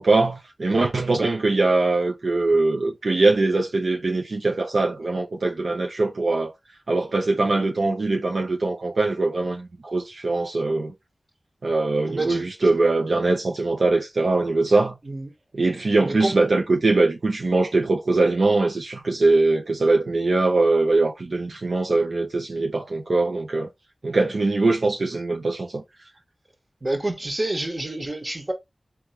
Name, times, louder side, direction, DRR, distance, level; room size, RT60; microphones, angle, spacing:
voice 1, 0.0-6.5 6.9-10.9 11.6-15.0 15.5-23.7 24.0-25.8, right 3 dB, 75° right, 0.7 m, -22 dB
voice 2, 12.1-12.5 15.1-15.3 16.0-16.3 26.8-28.5, right 2 dB, 40° right, 1.5 m, -28 dB
3.5 x 3.1 x 3.3 m
cardioid pair, 50°, 0 cm